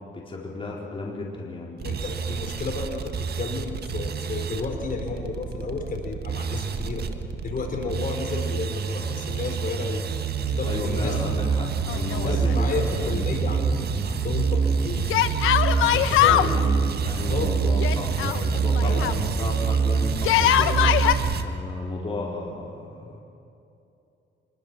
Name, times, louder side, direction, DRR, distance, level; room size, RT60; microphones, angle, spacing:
voice 1, 0.1-1.8 10.6-13.3 16.2-23.2, left 2 dB, 25° left, -3 dB, 4.3 m, -34 dB
voice 2, 1.8-7.0 7.4-10.0 10.5-11.5 12.2-15.1 15.4-15.6 15.9-16.4 17.3-17.5 18.8-19.0, left 4 dB, 45° left, 2 dB, 4.7 m, -32 dB
sound 1, 1.8-21.4, right 5 dB, 55° right, 1.6 m, -26 dB
Yell, 11.9-12.7 13.0-13.1 15.1-16.5 17.8-19.2 20.2-21.1, left 12 dB, 90° left, 1.0 m, -22 dB
25.5 x 22.5 x 6.3 m, 2.7 s
cardioid pair, 90°, 20 cm